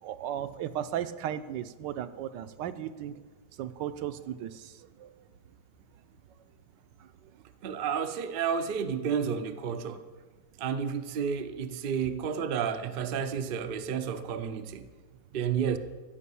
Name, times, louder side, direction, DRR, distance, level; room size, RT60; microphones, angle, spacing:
voice 1, 0.0-3.2 3.6-5.1, right 10 dB, 90° right, 1.3 m, -36 dB
voice 2, 7.6-10.0 10.6-14.9 15.3-15.8, right 7 dB, 70° right, 0.5 m, -31 dB
13.5 x 5.4 x 8.4 m
omnidirectional pair, 1.9 m